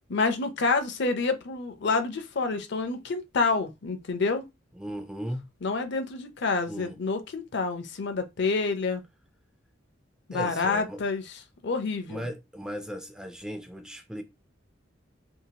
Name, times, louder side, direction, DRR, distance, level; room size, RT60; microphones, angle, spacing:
voice 1, 0.1-4.4 5.6-9.0 10.3-11.2 11.6-12.3, left 4 dB, 65° left, 0.6 m, -28 dB
voice 2, 4.7-5.5 6.7-7.0 10.3-11.0 12.1-14.2, equal, 5° right, 0.3 m, -37 dB
2.8 x 2.4 x 2.8 m
head